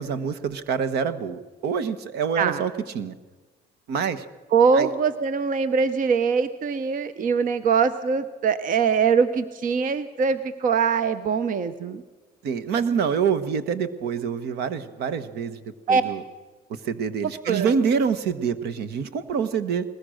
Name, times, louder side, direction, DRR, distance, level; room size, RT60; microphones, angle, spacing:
voice 1, 0.0-3.1 3.9-4.2 4.7-4.9 12.4-15.6 15.9-16.2 16.7-19.8, right 6 dB, 75° right, 13 dB, 1.3 m, -26 dB
voice 2, 4.5-12.0 15.9-16.0 17.5-17.7, right 5 dB, 55° right, 12 dB, 0.9 m, -22 dB
21.5 x 19.5 x 6.5 m, 1.3 s
cardioid pair, 110°, 17 cm